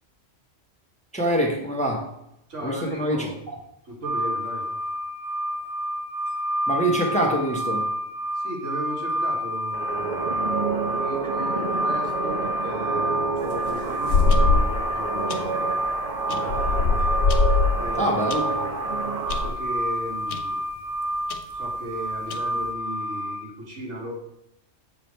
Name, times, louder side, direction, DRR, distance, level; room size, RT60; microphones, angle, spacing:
voice 1, 1.1-2.0 2.6-3.5 6.7-7.9 18.0-18.4, right 1 dB, 5° left, 0 dB, 1.1 m, -24 dB
voice 2, 2.5-3.4 3.8-4.7 8.3-15.7 16.3-17.0 17.8-18.8 19.3-20.6 21.5-24.1, right 1 dB, 80° right, -3 dB, 2.3 m, -36 dB
sound 1, 4.0-23.4, equal, 60° right, 0.7 m, -29 dB
sound 2, 9.7-19.5, right 4 dB, 40° right, 1.1 m, -29 dB
sound 3, 13.4-14.8 15.3-15.6 16.3-18.4 18.9-19.0 19.3-19.6 20.3-20.4 20.7-20.8 21.3-21.4 22.1-22.6, left 4 dB, 75° left, 1.1 m, -22 dB
7.4 x 5.0 x 4.4 m, 0.80 s
omnidirectional pair, 1.2 m